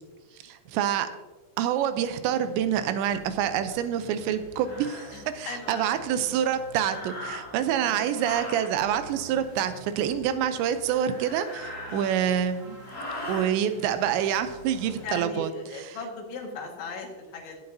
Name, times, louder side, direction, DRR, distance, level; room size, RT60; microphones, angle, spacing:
voice 1, 0.4-1.1 1.6-12.8 13.3-15.5 15.9-16.0, right 9 dB, 80° right, 10 dB, 2.9 m, -27 dB
sound 1, 2.0-8.4 8.7-15.2, right 2 dB, 65° right, 0.6 m, -49 dB
sound 2, 3.7-3.8 4.6-5.1 6.7-7.7 8.1-8.7 10.9-12.4 12.8-13.5, left 1 dB, 20° left, 2.3 m, -39 dB
voice 2, 5.1-6.0 11.9-12.1 13.4-13.5 15.0-17.6, left 3 dB, 80° left, 1 dB, 4.1 m, -38 dB
18.0 x 8.1 x 2.7 m, 1.2 s
omnidirectional pair, 5.2 m